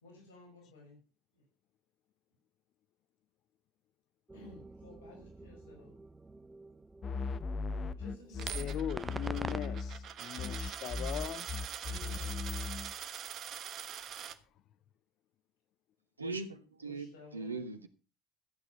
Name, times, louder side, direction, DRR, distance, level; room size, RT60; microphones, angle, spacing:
voice 1, 0.0-1.0 1.3-1.4 4.3-6.0 8.0-9.0 11.8-12.6 16.8-17.7, left 2 dB, 70° left, 5.3 m, -54 dB
sound 1, 4.3-9.6, right 2 dB, 15° right, 0.8 m, -47 dB
sound 2, 7.0-10.1 10.4-12.9, left 4 dB, 35° left, 1.0 m, -38 dB
Coin (dropping), 8.4-14.4, right 9 dB, 45° right, 1.3 m, -43 dB
voice 2, 8.5-11.5, left 11 dB, 50° left, 0.6 m, -40 dB
voice 3, 16.2-17.9, right 3 dB, 85° right, 1.4 m, -40 dB
14.0 x 8.8 x 5.5 m
figure-of-eight pair, 65°, 0 cm